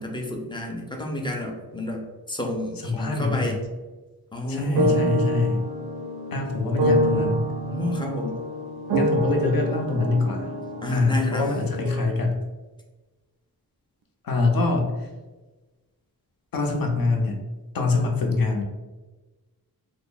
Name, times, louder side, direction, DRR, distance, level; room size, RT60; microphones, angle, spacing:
voice 1, 0.0-3.6 4.3-5.3 7.7-8.4 10.8-11.5, left 1 dB, 15° left, 0 dB, 0.4 m, -30 dB
voice 2, 2.8-3.6 4.5-5.6 6.3-7.5 8.9-10.5 10.9-12.4 14.2-14.9 16.5-17.4 17.7-18.6, left 3 dB, 70° left, 2 dB, 0.7 m, -24 dB
sound 1, 4.5-12.0, right 1 dB, 85° right, 0.5 m, -27 dB
3.1 x 2.0 x 3.8 m, 1.2 s
wide cardioid pair, 180°, 36 cm